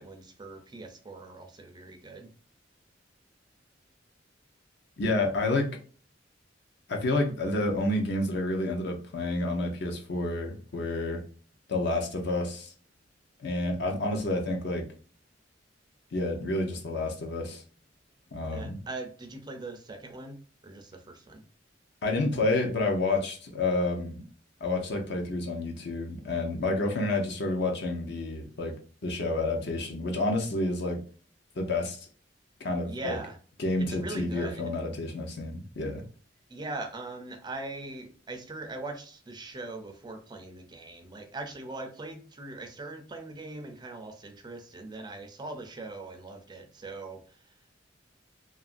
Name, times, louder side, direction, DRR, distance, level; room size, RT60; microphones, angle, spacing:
voice 1, 0.0-2.3 18.5-21.4 32.9-33.4 33.8-34.7 36.5-47.7, right 2 dB, 25° right, 6 dB, 0.4 m, -41 dB
voice 2, 5.0-5.7 6.9-11.2 11.7-12.7 13.4-14.9 16.1-17.6 18.3-18.8 22.0-24.2 24.6-28.7 29.0-31.0 31.6-32.0 32.6-33.2 33.6-36.0, left 2 dB, 60° left, 2 dB, 0.6 m, -29 dB
2.9 x 2.4 x 2.4 m, 0.40 s
head